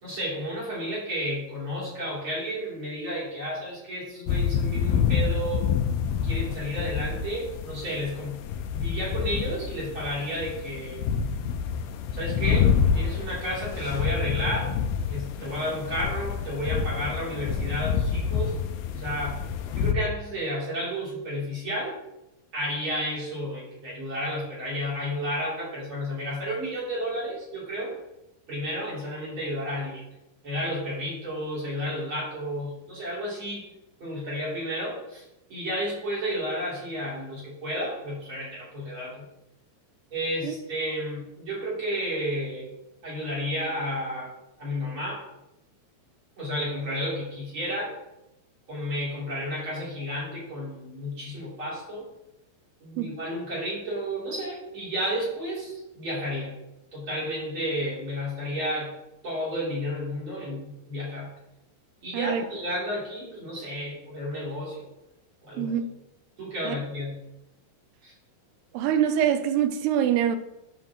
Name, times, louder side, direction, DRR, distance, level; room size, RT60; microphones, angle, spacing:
voice 1, 0.0-5.7 6.2-8.4 8.7-11.0 12.1-14.8 15.1-18.5 18.9-19.4 19.7-22.0 22.5-28.0 28.5-30.0 30.4-33.7 34.0-35.2 35.5-39.3 40.1-42.7 43.0-44.3 44.6-45.3 46.4-48.0 48.7-52.1 52.8-56.5 56.9-58.9 59.2-61.3 62.0-64.9 65.4-65.7 66.4-67.2 68.0-68.1, equal, 30° right, 3.7 m, -32 dB
sound 1, 4.3-19.9, left 7 dB, 80° left, 2.3 m, -27 dB
voice 2, 65.6-65.9 66.6-66.8 68.7-70.4, right 9 dB, 80° right, 2.5 m, -24 dB
11.5 x 7.2 x 3.1 m
omnidirectional pair, 4.8 m